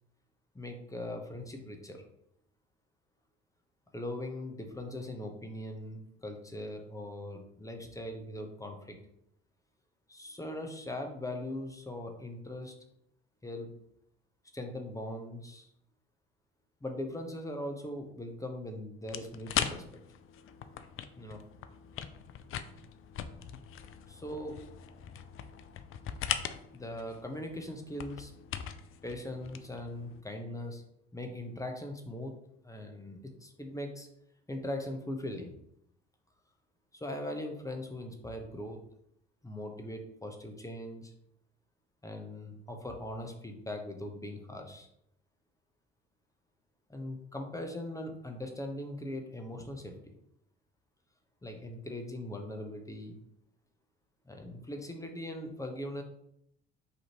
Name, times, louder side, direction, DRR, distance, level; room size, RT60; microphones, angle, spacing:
voice 1, 0.5-2.0 3.9-9.0 10.1-12.7 13.4-13.7 14.5-15.7 16.8-20.0 21.2-21.4 24.1-24.6 26.7-28.3 29.0-30.8 31.1-32.3 32.6-34.1 34.5-35.5 36.9-38.8 39.4-41.1 42.0-44.9 46.9-50.1 51.4-53.2 54.3-56.0, left 1 dB, 10° left, 3 dB, 0.9 m, -40 dB
sound 1, 19.1-30.2, left 9 dB, 45° left, 0.4 m, -40 dB
5.2 x 2.9 x 2.9 m, 0.74 s
hypercardioid pair, 55°, 31 cm